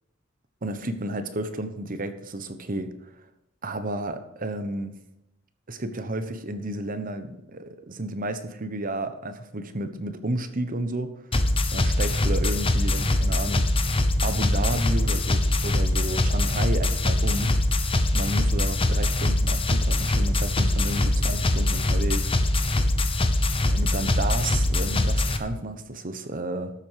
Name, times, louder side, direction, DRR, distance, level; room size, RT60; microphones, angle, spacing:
voice 1, 0.6-2.9 3.6-4.9 5.7-11.1 11.7-13.7 14.2-17.5 18.1-22.3 23.7-26.7, right 1 dB, 45° right, 9 dB, 1.1 m, -32 dB
sound 1, 11.3-25.4, left 1 dB, 30° left, 1.0 m, -23 dB
13.0 x 7.9 x 5.0 m, 0.89 s
head